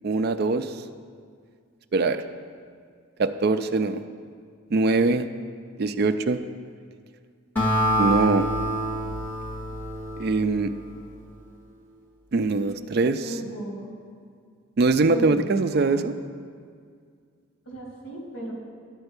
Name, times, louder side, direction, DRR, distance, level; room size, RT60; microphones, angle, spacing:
voice 1, 0.0-0.8 1.9-2.2 3.2-4.0 4.7-5.3 5.8-6.4 8.0-8.5 10.2-10.7 12.3-13.2 14.8-16.1, right 3 dB, 45° right, 9 dB, 0.4 m, -22 dB
Acoustic guitar, 7.6-11.1, right 1 dB, 10° left, 1.5 m, -27 dB
voice 2, 13.2-13.9 15.1-16.1 17.7-18.5, right 1 dB, 75° left, -2 dB, 2.7 m, -36 dB
11.5 x 4.4 x 8.0 m, 2.1 s
head